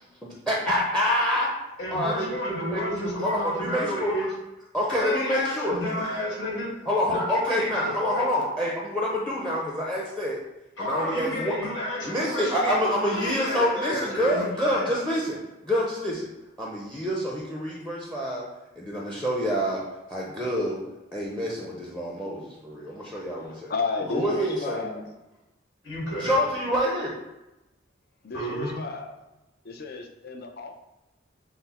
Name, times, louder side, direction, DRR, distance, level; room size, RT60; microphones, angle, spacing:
voice 1, 0.2-1.5 1.9-2.8 3.2-4.1 4.7-6.1 6.9-10.4 10.8-11.5 12.0-15.4 15.6-16.3 16.6-18.4 18.8-19.8 20.1-20.8 21.1-23.7 24.1-25.0 26.2-27.1, equal, 5° left, -3 dB, 0.6 m, -27 dB
voice 2, 1.8-4.3 4.9-6.7 7.1-8.3 10.8-14.8 25.8-26.4 28.3-28.8, equal, 70° left, -4 dB, 1.6 m, -31 dB
voice 3, 23.0-25.0 28.2-29.2 29.6-30.8, left 3 dB, 55° left, 4 dB, 0.6 m, -33 dB
5.8 x 2.1 x 4.2 m, 0.97 s
head